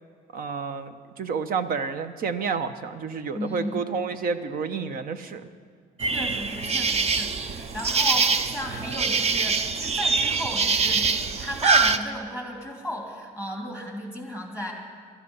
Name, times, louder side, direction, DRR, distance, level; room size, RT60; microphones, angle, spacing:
voice 1, 0.3-5.5, right 5 dB, 60° right, 11 dB, 1.0 m, -30 dB
voice 2, 3.3-3.8 6.0-14.7, equal, 10° right, 0 dB, 3.1 m, -35 dB
sound 1, 6.0-12.0, right 4 dB, 40° right, 0.8 m, -24 dB
19.0 x 13.0 x 5.6 m, 2.1 s
cardioid pair, 110°, 17 cm